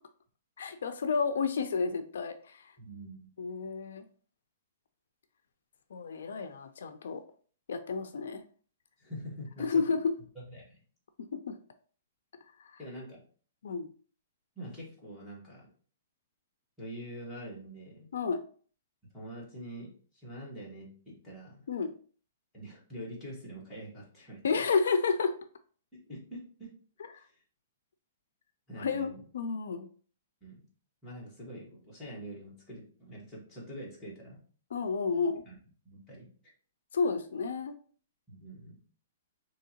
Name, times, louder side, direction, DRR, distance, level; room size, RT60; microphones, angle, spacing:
voice 1, 0.6-2.7 3.4-4.0 5.9-7.2 7.7-8.4 9.6-10.1 11.3-11.6 12.6-12.8 13.6-13.9 18.1-18.4 21.7-21.9 24.4-25.3 28.7-29.9 34.7-35.4 36.9-37.7, left 5 dB, 75° left, 9 dB, 0.4 m, -31 dB
voice 2, 2.8-3.5 9.0-10.0 10.5-10.8 12.8-13.2 14.6-15.7 16.8-18.1 19.1-21.7 22.5-24.6 25.9-26.7 28.7-29.2 30.4-30.6 31.0-34.4 35.4-35.6 35.8-36.3 38.3-38.8, equal, 5° left, -7 dB, 1.2 m, -45 dB
3.7 x 2.8 x 2.8 m, 0.44 s
hypercardioid pair, 175°, 0 cm